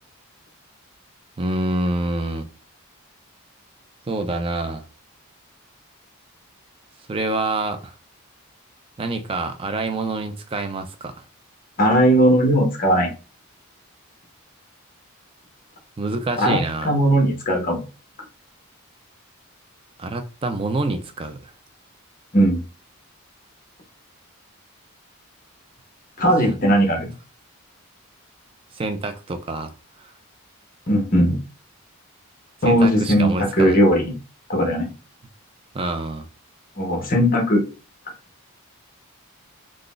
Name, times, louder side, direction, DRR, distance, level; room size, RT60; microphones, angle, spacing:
voice 1, 1.4-2.5 4.1-4.8 7.1-7.9 9.0-11.2 16.0-17.0 20.0-21.5 26.4-26.6 28.7-29.7 30.0-30.1 32.7-33.8 35.7-36.3, right 2 dB, 25° right, 0.3 m, -26 dB
voice 2, 11.8-13.1 16.4-17.8 22.3-22.6 26.2-27.1 30.9-31.4 32.6-34.1 34.5-34.9 36.8-37.6, equal, 40° left, 0.9 m, -18 dB
3.7 x 2.1 x 2.4 m
head